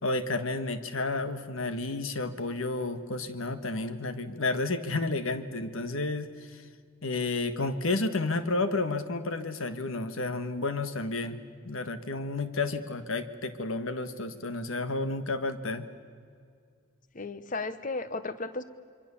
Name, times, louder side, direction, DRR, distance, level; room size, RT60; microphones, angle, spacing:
voice 1, 0.0-6.6 7.0-11.4 11.6-15.9, left 2 dB, 70° left, 10 dB, 1.5 m, -31 dB
voice 2, 17.1-18.6, left 3 dB, 35° left, 12 dB, 1.0 m, -34 dB
27.0 x 24.0 x 7.0 m, 2.2 s
head